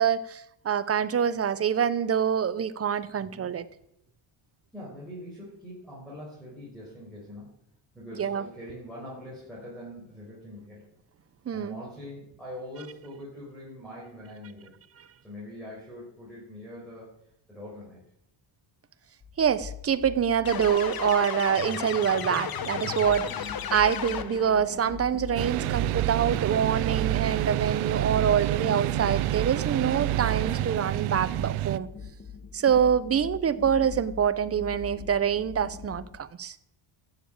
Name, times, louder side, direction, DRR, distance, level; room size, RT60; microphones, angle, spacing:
voice 1, 0.0-3.7 8.2-8.4 11.5-11.8 19.4-31.9 32.5-36.6, right 8 dB, 30° right, 0.7 m, -26 dB
voice 2, 3.2-3.5 4.7-7.5 7.9-10.9 11.5-14.7 15.2-17.1 17.5-18.0 23.3-23.5, left 1 dB, ahead, 5.7 m, -43 dB
sound 1, 19.2-36.2, left 6 dB, 25° left, 1.4 m, -43 dB
sound 2, 20.4-24.6, left 8 dB, 45° left, 1.1 m, -34 dB
sound 3, 25.4-31.8, right 15 dB, 85° right, 0.7 m, -28 dB
15.0 x 7.4 x 8.7 m
cardioid pair, 135°, 50 cm